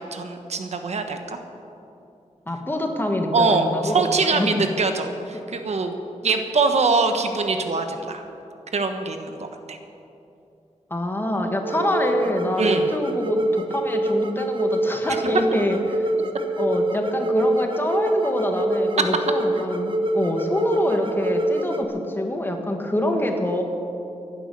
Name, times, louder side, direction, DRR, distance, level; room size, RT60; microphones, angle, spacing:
voice 1, 0.0-1.4 3.3-5.9 6.2-8.2 8.7-9.4 9.7-9.8 12.6-12.9, right 4 dB, 65° right, 6 dB, 1.2 m, -23 dB
voice 2, 2.5-4.5 10.9-16.0 16.6-23.6, left 1 dB, 15° left, 3 dB, 1.5 m, -25 dB
sound 1, 11.6-21.9, right 1 dB, 45° right, 0.9 m, -25 dB
15.0 x 11.0 x 6.9 m, 2.8 s
wide cardioid pair, 130°, 12 cm